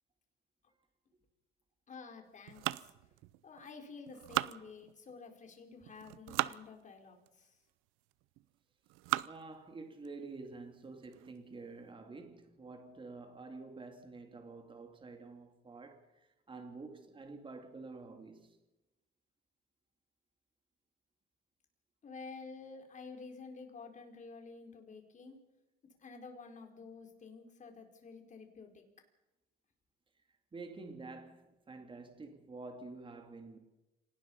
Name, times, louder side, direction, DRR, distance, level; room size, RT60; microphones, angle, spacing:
voice 1, 1.9-2.9 3.4-7.6 22.0-25.4 26.0-28.8, left 4 dB, 35° left, 4.8 m, -50 dB
sound 1, 2.5-3.7 4.1-5.2 5.9-6.6 7.3-7.4 8.1-8.4 8.9-9.5 10.0-10.1 10.5-10.6 11.0-11.3, right 19 dB, 85° right, 0.7 m, -37 dB
voice 2, 9.2-18.6 30.5-33.6, right 3 dB, 25° right, 3.1 m, -49 dB
26.0 x 19.0 x 5.7 m
cardioid pair, 100°, 20 cm